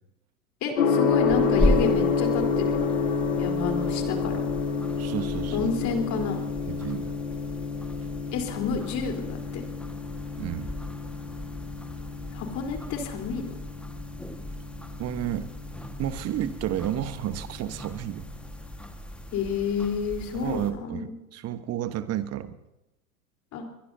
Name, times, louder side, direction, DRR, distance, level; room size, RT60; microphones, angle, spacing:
voice 1, 0.6-2.9 3.4-4.5 5.5-6.4 8.3-9.6 12.3-13.6 19.3-21.1 23.5-23.6, left 5 dB, 40° left, 2 dB, 4.0 m, -30 dB
Gong, 0.8-18.6, left 5 dB, 80° left, 2.8 m, -29 dB
sound 1, 1.0-20.7, equal, 5° left, 1.6 m, -36 dB
voice 2, 5.0-5.7 6.1-6.2 6.7-7.1 10.4-10.7 15.0-15.5 16.0-18.3 20.3-22.6, right 11 dB, 35° right, 11 dB, 1.3 m, -31 dB
22.5 x 22.5 x 2.8 m, 0.94 s
hypercardioid pair, 85°, 43 cm